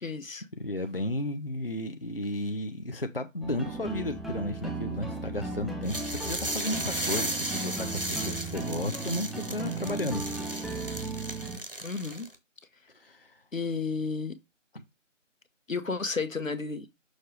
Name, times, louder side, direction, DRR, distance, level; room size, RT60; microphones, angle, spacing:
voice 1, 0.0-0.4 11.8-12.3 13.5-14.4 15.7-16.9, left 4 dB, 85° left, 1.1 m, -32 dB
voice 2, 0.6-10.6 12.9-13.4, left 1 dB, 45° left, 0.6 m, -34 dB
sound 1, 3.4-11.6, right 3 dB, ahead, 0.5 m, -36 dB
sound 2, 5.9-12.4, right 1 dB, 45° right, 0.9 m, -35 dB
6.4 x 3.0 x 4.9 m
figure-of-eight pair, 175°, 39 cm